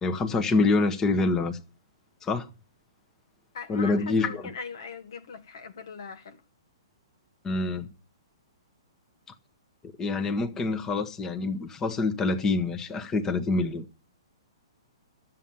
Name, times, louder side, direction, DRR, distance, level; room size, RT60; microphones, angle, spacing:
voice 1, 0.0-1.6 2.2-2.5 3.7-4.5 7.4-7.9 10.0-13.9, left 3 dB, 20° left, 1.4 m, -26 dB
voice 2, 3.5-6.4, left 5 dB, 65° left, 1.6 m, -40 dB
12.5 x 7.6 x 7.1 m
hypercardioid pair, 125°, 3 cm